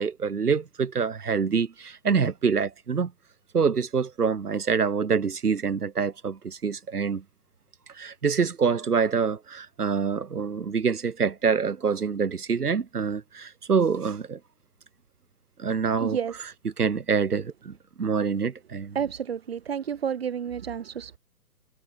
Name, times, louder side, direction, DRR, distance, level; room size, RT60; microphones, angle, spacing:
voice 1, 0.0-3.1 3.5-7.2 8.0-14.4 15.6-19.0, right 6 dB, 70° right, 7.2 m, -26 dB
voice 2, 16.0-16.3 19.0-21.2, right 8 dB, 40° right, 5.4 m, -30 dB
hypercardioid pair, 180°, 47 cm